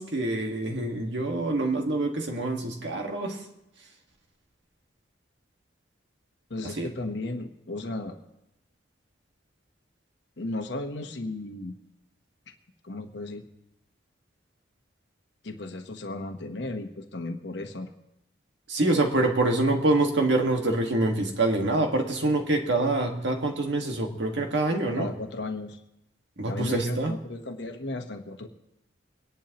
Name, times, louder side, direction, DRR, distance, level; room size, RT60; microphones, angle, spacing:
voice 1, 0.0-3.4 6.6-6.9 18.7-25.1 26.4-27.1, right 2 dB, 70° right, 3 dB, 1.7 m, -26 dB
voice 2, 6.5-8.2 10.4-11.7 12.8-13.5 15.4-17.9 24.9-25.8 26.5-28.5, left 2 dB, 65° left, 4 dB, 1.0 m, -35 dB
24.5 x 10.5 x 2.9 m, 0.87 s
head